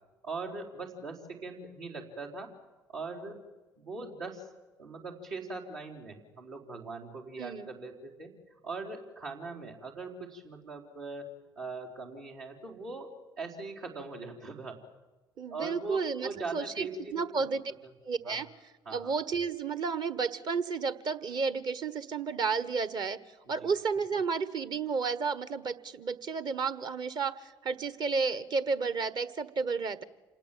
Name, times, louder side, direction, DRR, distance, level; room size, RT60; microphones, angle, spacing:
voice 1, 0.2-2.5 2.9-3.4 3.8-4.5 4.8-13.1 13.4-14.8 15.5-17.2 18.2-18.4 18.8-19.1 23.5-23.6, right 3 dB, 75° right, -4 dB, 4.3 m, -41 dB
voice 2, 7.4-7.7 15.4-17.6 18.0-18.5 18.9-23.2 23.5-30.0, right 5 dB, 40° right, 15 dB, 1.5 m, -32 dB
28.0 x 19.0 x 7.7 m, 1.2 s
figure-of-eight pair, 50°, 11 cm